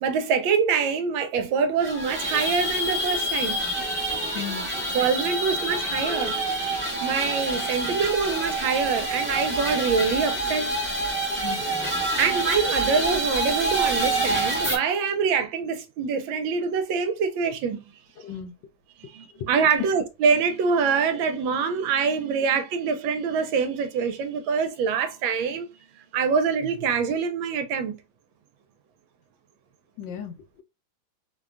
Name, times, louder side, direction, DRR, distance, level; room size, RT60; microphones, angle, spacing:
voice 1, 0.0-3.6 4.9-6.3 7.0-10.7 12.2-17.8 19.0-25.7 26.1-28.0, right 6 dB, 85° right, 1.4 m, -25 dB
sound 1, 1.8-14.8, right 1 dB, 10° right, 0.6 m, -27 dB
voice 2, 4.3-4.7 11.4-11.6 18.2-18.5 30.0-30.6, left 8 dB, 75° left, 1.2 m, -35 dB
3.2 x 2.2 x 2.4 m
omnidirectional pair, 2.1 m